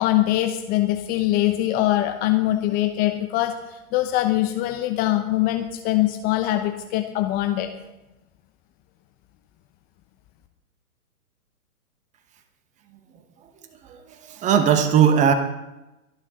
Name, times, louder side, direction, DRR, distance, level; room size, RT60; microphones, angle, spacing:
voice 1, 0.0-7.7, left 14 dB, 20° left, 7 dB, 0.9 m, -23 dB
voice 2, 14.3-15.3, right 8 dB, 15° right, 8 dB, 1.1 m, -18 dB
23.0 x 11.0 x 3.7 m, 0.96 s
hypercardioid pair, 130°, 44 cm